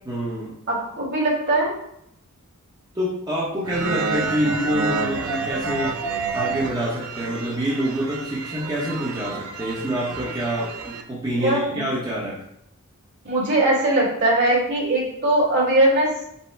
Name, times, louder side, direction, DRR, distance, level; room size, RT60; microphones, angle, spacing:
voice 1, 0.0-0.6 2.9-6.1 6.3-12.4, equal, 20° right, -6 dB, 0.7 m, -26 dB
voice 2, 0.7-1.7 11.4-11.9 13.2-16.3, right 1 dB, 55° right, -4 dB, 1.6 m, -20 dB
sound 1, 3.6-11.0, right 4 dB, 70° right, 0.5 m, -29 dB
5.4 x 2.0 x 4.4 m, 0.75 s
head